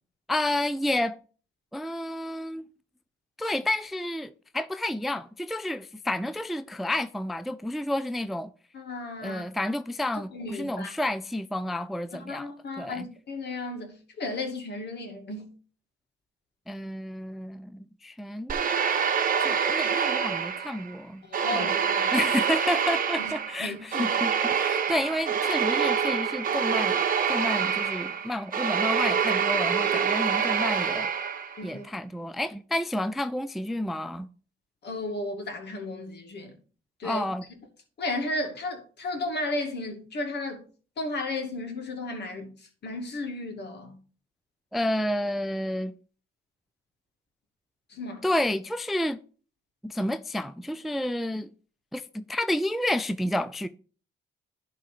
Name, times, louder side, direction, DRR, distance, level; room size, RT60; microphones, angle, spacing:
voice 1, 0.3-1.2 1.7-2.6 3.4-8.5 9.2-12.5 12.8-13.1 16.7-18.7 19.4-21.2 21.5-21.7 22.1-27.0 27.3-31.1 31.6-34.3 37.0-37.4 44.7-45.9 48.2-49.2 49.8-51.5 51.9-53.7, left 1 dB, ahead, 0.3 m, -30 dB
voice 2, 8.7-9.4 10.3-10.9 12.3-15.5 21.3-22.1 23.2-23.3 23.6-24.2 31.6-31.8 34.8-36.5 37.0-37.3 38.0-40.6 41.0-42.5 42.8-44.0 47.9-48.3, left 2 dB, 55° left, 2.4 m, -34 dB
sound 1, 18.5-20.9 21.3-31.6, right 7 dB, 45° right, 1.0 m, -26 dB
11.0 x 3.8 x 5.0 m
cardioid pair, 90°, 20 cm